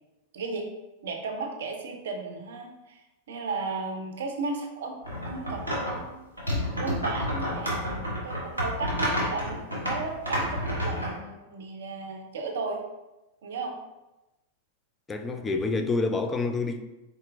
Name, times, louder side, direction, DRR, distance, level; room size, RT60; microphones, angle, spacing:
voice 1, 0.3-0.7 1.0-3.0 3.3-5.0 5.2-6.3 6.6-7.7 8.2-12.8 13.4-13.8, right 3 dB, 60° right, 0.6 m, -34 dB
sound 1, 5.0-6.0 6.4-11.1, equal, 90° left, 1.3 m, -30 dB
voice 2, 15.1-16.8, left 3 dB, 15° left, 0.4 m, -27 dB
4.3 x 3.9 x 2.5 m
figure-of-eight pair, 90°, 0 cm